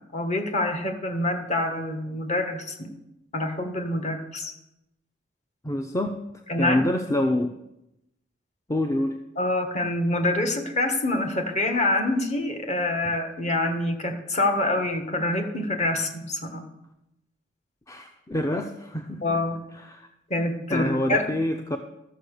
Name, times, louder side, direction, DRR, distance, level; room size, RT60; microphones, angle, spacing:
voice 1, 0.1-2.9 3.3-4.5 6.5-6.8 9.4-16.6 19.2-19.6 20.3-21.2, left 2 dB, 35° left, 5 dB, 1.6 m, -26 dB
voice 2, 5.6-6.2 6.6-7.6 8.7-9.2 17.9-19.2 19.7-20.1 20.7-21.8, left 1 dB, 15° left, 6 dB, 0.5 m, -26 dB
13.0 x 7.0 x 6.6 m, 0.88 s
head